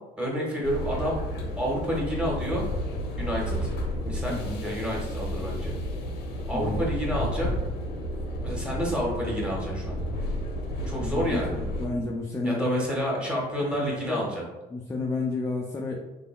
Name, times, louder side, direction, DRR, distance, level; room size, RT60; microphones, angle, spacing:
voice 1, 0.2-1.2 1.6-2.7 3.2-3.7 4.0-4.4 4.6-5.7 6.5-7.5 8.4-10.0 10.8-11.6 12.4-14.4, equal, 5° right, -4 dB, 1.3 m, -29 dB
sound 1, 0.6-11.9, equal, 80° left, 0.8 m, -31 dB
voice 2, 4.3-4.6 6.5-6.9 11.0-12.9 13.6-14.2 14.7-16.0, left 2 dB, 15° left, -1 dB, 0.4 m, -31 dB
3.6 x 3.3 x 2.2 m, 1.1 s
cardioid pair, 110°, 17 cm